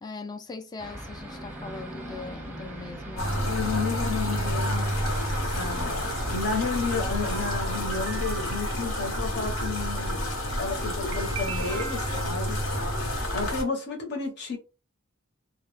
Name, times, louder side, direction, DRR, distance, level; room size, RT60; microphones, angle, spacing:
voice 1, 0.0-3.6, left 3 dB, 20° left, 0.3 m, -40 dB
sound 1, 0.8-7.5, right 1 dB, 10° right, 0.7 m, -40 dB
sound 2, 3.2-13.6, equal, 85° left, 0.8 m, -29 dB
voice 2, 3.4-5.0 5.6-10.2 10.6-12.8 13.3-14.6, left 4 dB, 55° left, 0.7 m, -32 dB
sound 3, 7.1-8.9 11.1-12.6, right 7 dB, 65° right, 0.3 m, -40 dB
2.2 x 2.0 x 3.0 m
head